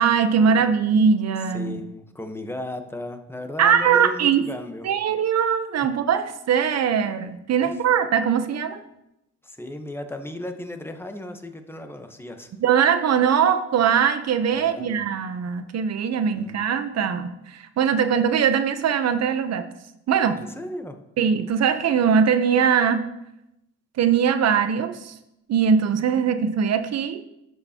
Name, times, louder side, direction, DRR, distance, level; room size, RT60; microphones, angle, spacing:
voice 1, 0.0-1.8 3.6-4.4 4.8-8.8 12.6-19.7 20.1-20.4 21.2-23.0 24.0-25.1 25.5-27.2, right 7 dB, 60° right, 9 dB, 0.8 m, -21 dB
voice 2, 1.5-4.9 7.6-7.8 9.4-12.5 14.5-15.0 16.3-16.6 20.4-21.0, left 1 dB, 10° left, 6 dB, 1.0 m, -35 dB
12.5 x 6.7 x 2.9 m, 0.87 s
cardioid pair, 90°, 30 cm